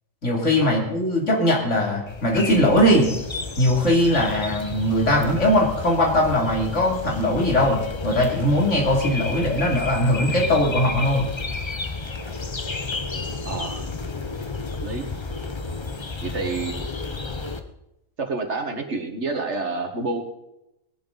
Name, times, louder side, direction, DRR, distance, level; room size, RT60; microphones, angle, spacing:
voice 1, 0.2-3.1 3.6-11.3, left 1 dB, 60° left, -1 dB, 3.3 m, -20 dB
sound 1, 2.1-17.6, left 3 dB, 25° left, 0.8 m, -32 dB
voice 2, 13.5-13.8 14.8-15.1 16.2-16.8 18.3-20.2, right 3 dB, 55° right, 4 dB, 1.9 m, -28 dB
19.0 x 11.5 x 4.0 m, 0.88 s
omnidirectional pair, 1.4 m